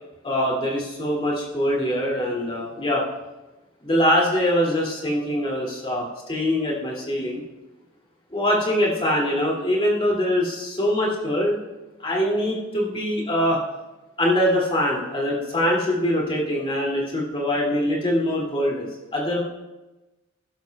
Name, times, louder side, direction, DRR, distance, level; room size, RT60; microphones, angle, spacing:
voice 1, 0.2-3.0 3.8-7.4 8.3-11.6 12.0-13.6 14.2-18.9 19.1-19.4, equal, 25° left, -3 dB, 2.6 m, -23 dB
14.5 x 12.0 x 2.4 m, 1.1 s
head